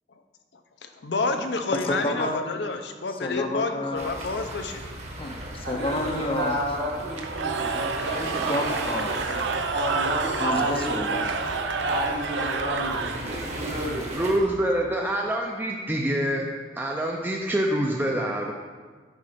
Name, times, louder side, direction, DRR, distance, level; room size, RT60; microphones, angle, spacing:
voice 1, 0.8-4.8 9.2-9.5, left 3 dB, 65° left, 6 dB, 0.7 m, -29 dB
voice 2, 2.0-2.4 3.2-4.1 5.2-6.6 8.5-9.2 10.4-11.3, left 1 dB, 30° left, 4 dB, 0.6 m, -30 dB
sound 1, 3.9-14.4, right 1 dB, 40° right, 1.2 m, -37 dB
voice 3, 5.6-8.6 9.7-11.1 11.8-14.2, right 1 dB, 65° right, -4 dB, 2.5 m, -30 dB
Cheering / Crowd, 7.2-13.5, right 4 dB, 85° right, 0.6 m, -29 dB
voice 4, 14.1-16.5 16.8-18.5, right 1 dB, 10° right, -1 dB, 0.5 m, -26 dB
9.8 x 4.3 x 5.0 m, 1.5 s
head